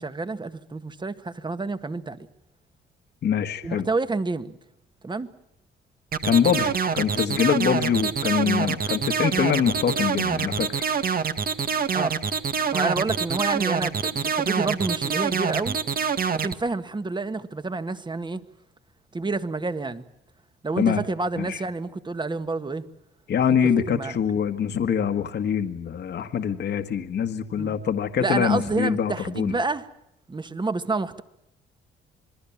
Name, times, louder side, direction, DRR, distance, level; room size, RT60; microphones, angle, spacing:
voice 1, 0.0-2.3 3.6-4.6 5.0-5.3 11.9-12.2 12.7-15.8 16.4-18.4 19.1-20.0 20.6-22.8 23.9-24.1 27.6-27.8 28.2-29.9 30.3-31.2, right 3 dB, 20° right, 11 dB, 1.8 m, -28 dB
voice 2, 3.2-3.9 6.2-10.9 20.8-21.0 21.4-21.6 23.3-29.6, left 8 dB, 60° left, 7 dB, 1.8 m, -24 dB
sound 1, 6.1-16.5, right 6 dB, 45° right, 1.8 m, -25 dB
27.0 x 21.0 x 7.4 m, 0.83 s
cardioid pair, 90°, 20 cm